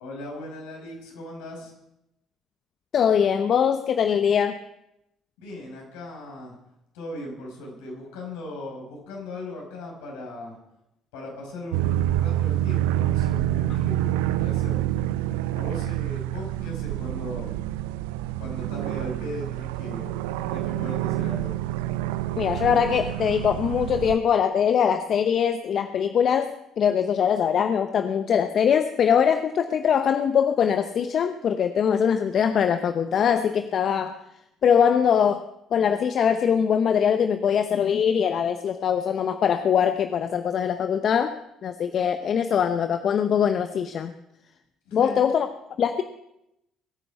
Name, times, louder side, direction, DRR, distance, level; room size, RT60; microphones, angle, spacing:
voice 1, 0.0-1.7 5.4-6.6 6.9-10.6 11.1-14.8 15.5-17.5 18.4-20.1 20.5-21.6 44.9-45.3, left 1 dB, 75° left, 0 dB, 5.5 m, -38 dB
voice 2, 2.9-4.6 22.4-34.2 34.6-35.4 35.7-41.3 41.6-44.1 44.9-45.5 45.8-46.0, left 8 dB, 55° left, 9 dB, 0.9 m, -22 dB
sound 1, 11.7-24.2, right 13 dB, 80° right, 0.5 m, -27 dB
22.0 x 9.5 x 5.9 m, 0.84 s
hypercardioid pair, 55°, 0 cm